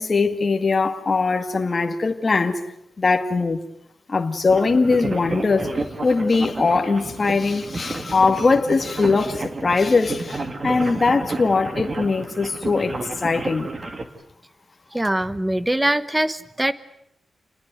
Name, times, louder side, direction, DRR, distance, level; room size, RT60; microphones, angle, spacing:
voice 1, 0.0-2.6 3.0-3.6 4.1-5.7 6.0-13.7, left 4 dB, 35° left, 1.9 m, -21 dB
sound 1, 4.5-14.0, right 2 dB, 30° right, 2.4 m, -31 dB
voice 2, 14.9-16.7, right 1 dB, 10° right, 1.1 m, -22 dB
29.0 x 20.5 x 9.3 m
wide cardioid pair, 150°, 0 cm